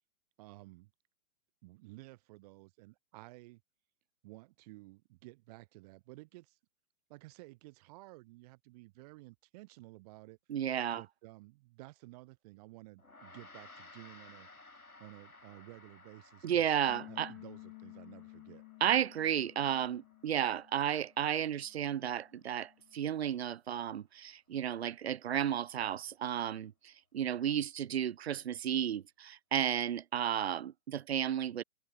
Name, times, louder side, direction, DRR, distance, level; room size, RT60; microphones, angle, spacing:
voice 1, 0.4-0.9 1.6-3.6 4.2-6.6 7.1-16.7 17.1-18.6, right 21 dB, 25° right, 1.7 m, -54 dB
voice 2, 10.5-11.0 16.4-17.3 18.8-31.6, right 9 dB, 45° right, 0.9 m, -33 dB
Gong, 13.0-22.6, left 3 dB, 80° left, 4.2 m, -59 dB
Bass guitar, 16.9-21.2 21.5-23.1, left 40 dB or more, 25° left, 4.7 m, -54 dB
open air
figure-of-eight pair, 125°, 43 cm